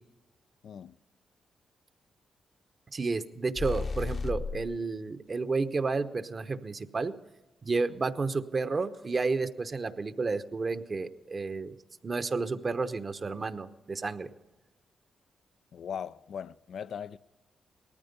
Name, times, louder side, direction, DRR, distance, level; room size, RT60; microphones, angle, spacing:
voice 1, 0.6-0.9 15.7-17.2, left 8 dB, 70° left, 0.4 m, -39 dB
voice 2, 2.9-7.1 7.6-11.7 12.0-14.3, right 4 dB, 40° right, 1.0 m, -31 dB
sound 1, 3.5-4.8, left 4 dB, 50° left, 0.9 m, -33 dB
18.5 x 13.5 x 5.3 m
cardioid pair, 60°, 0 cm